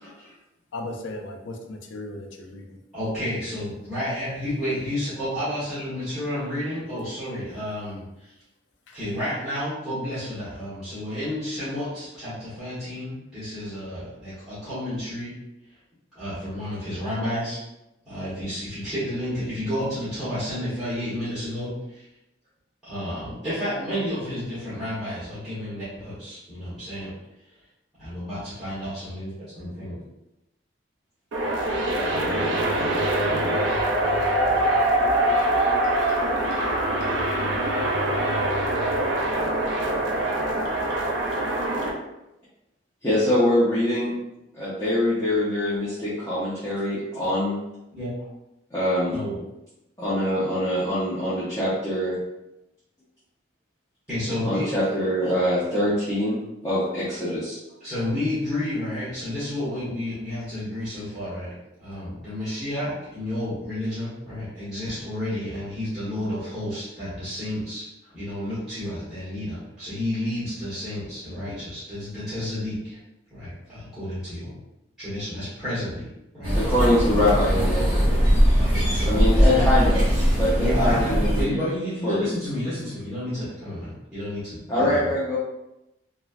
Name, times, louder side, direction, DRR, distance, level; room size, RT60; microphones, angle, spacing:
voice 1, 0.7-2.8 8.9-9.0, left 2 dB, 80° left, 3 dB, 0.4 m, -36 dB
voice 2, 2.9-8.3 8.9-15.4 16.1-17.6 18.0-22.0 22.8-27.1 28.0-29.3 29.6-30.0 47.9-48.1 49.1-49.4 54.1-54.7 57.8-61.5 61.8-73.0 73.3-74.6 75.0-76.1 76.3-76.5 78.6-79.6 80.5-85.1, left 1 dB, ahead, -16 dB, 1.1 m, -31 dB
sound 1, 31.3-41.9, right 1 dB, 75° right, 0.5 m, -23 dB
voice 3, 43.0-44.1 44.5-47.6 48.7-49.2 50.0-52.2 54.4-56.4 56.6-57.6 76.5-78.2 79.1-81.6 82.0-82.3 84.7-85.4, left 1 dB, 15° left, -11 dB, 0.6 m, -24 dB
sound 2, 76.4-81.4, equal, 30° right, 1.2 m, -20 dB
3.0 x 2.2 x 2.4 m, 0.91 s
head